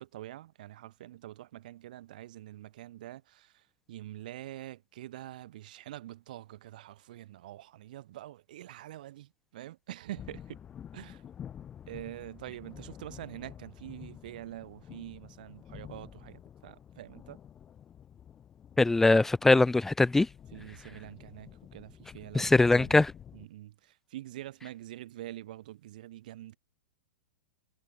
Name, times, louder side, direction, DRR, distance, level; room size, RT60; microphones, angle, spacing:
voice 1, 0.0-3.5 3.9-10.6 10.9-11.2 11.9-17.4 20.5-23.0 23.3-26.6, right 14 dB, 55° right, 2.6 m, -45 dB
sound 1, 10.1-23.5, left 9 dB, 20° left, 2.1 m, -49 dB
voice 2, 18.8-20.3 22.3-23.1, left 2 dB, 5° left, 0.6 m, -22 dB
figure-of-eight pair, 105°, 5 cm